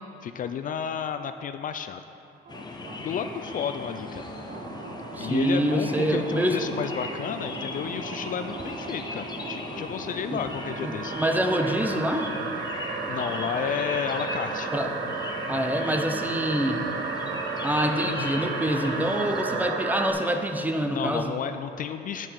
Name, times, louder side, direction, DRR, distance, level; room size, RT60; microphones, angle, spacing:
voice 1, 0.2-2.0 3.0-4.2 5.2-11.1 13.1-14.7 19.5-19.7 20.9-22.3, left 8 dB, 45° left, 9 dB, 0.4 m, -32 dB
sound 1, 2.5-19.4, left 3 dB, 25° left, 0.8 m, -38 dB
sound 2, 2.5-20.1, right 4 dB, 70° right, 1.0 m, -34 dB
voice 2, 5.1-6.6 10.3-10.4 10.8-12.3 14.7-14.9 15.5-16.9 17.6-21.3, right 1 dB, 10° right, 5 dB, 0.7 m, -26 dB
9.6 x 7.2 x 5.1 m, 2.7 s
cardioid pair, 120°, 19 cm